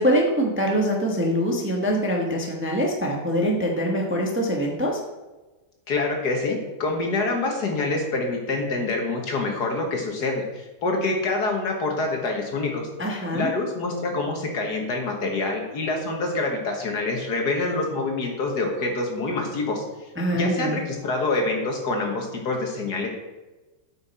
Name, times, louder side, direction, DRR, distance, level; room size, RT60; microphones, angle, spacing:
voice 1, 0.0-5.0 13.0-13.5 20.2-20.8, equal, 10° right, 0 dB, 0.9 m, -24 dB
voice 2, 5.9-12.8 13.3-19.8 20.3-23.1, left 3 dB, 65° left, 1 dB, 1.9 m, -26 dB
8.7 x 5.8 x 4.3 m, 1.2 s
omnidirectional pair, 2.0 m